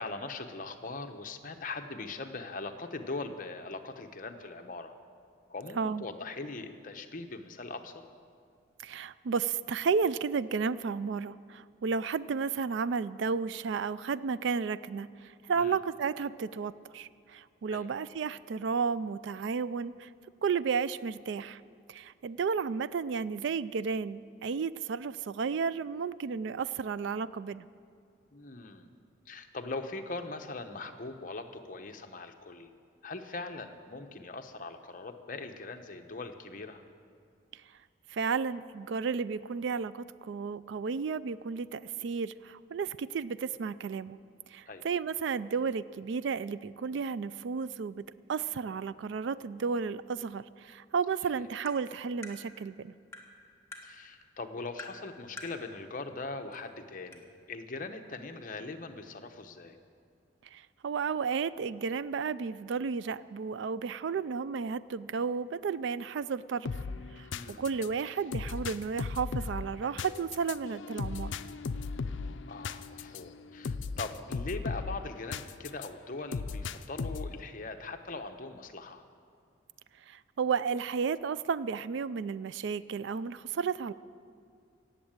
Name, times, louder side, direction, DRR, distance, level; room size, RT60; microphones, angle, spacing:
voice 1, 0.0-4.9 5.5-8.0 15.6-15.8 17.7-17.9 28.3-28.9 29.3-32.7 33.0-36.8 44.7-44.8 51.4-51.5 53.8-59.8 67.3-67.6 72.5-79.1, left 3 dB, 40° left, 6 dB, 0.8 m, -41 dB
voice 2, 8.8-20.1 20.4-21.6 21.9-27.7 38.1-44.2 44.5-52.9 60.5-66.7 67.1-71.4 80.1-83.9, right 5 dB, 65° right, 17 dB, 0.3 m, -33 dB
Tap, 51.7-51.8 52.2-52.4 53.1-53.3 53.7-53.9 54.8-55.0 55.4-55.6 56.5-56.6 57.1-57.2, left 2 dB, 15° left, 1.5 m, -44 dB
sound 1, 66.6-75.9 76.3-77.4, left 4 dB, 75° left, 0.5 m, -37 dB
16.5 x 7.4 x 8.8 m, 2.3 s
head